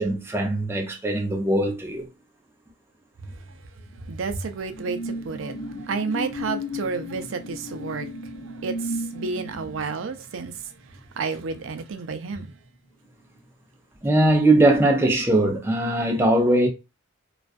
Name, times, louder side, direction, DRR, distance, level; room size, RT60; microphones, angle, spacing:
voice 1, 0.0-2.1 14.0-16.7, right 1 dB, 10° right, 0.4 m, -20 dB
sound 1, 3.9-12.9 13.2-13.5, left 1 dB, 75° left, 0.9 m, -36 dB
voice 2, 4.1-5.6 5.9-8.1 8.6-10.5 11.2-12.5, right 4 dB, 85° right, 0.4 m, -30 dB
2.3 x 2.2 x 2.4 m
head